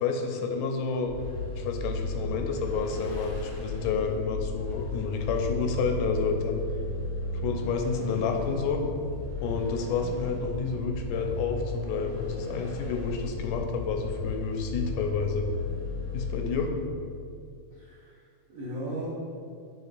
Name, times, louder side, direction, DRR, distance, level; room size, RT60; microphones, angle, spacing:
voice 1, 0.0-1.1 1.6-6.6 7.3-8.8 9.4-15.5 16.1-16.7, left 5 dB, 85° left, 4 dB, 1.9 m, -30 dB
Vehicle, 1.1-17.0, left 2 dB, 70° left, 1.1 m, -34 dB
voice 2, 17.7-19.1, right 1 dB, 85° right, -11 dB, 0.7 m, -38 dB
8.1 x 4.6 x 2.5 m, 2.4 s
omnidirectional pair, 3.3 m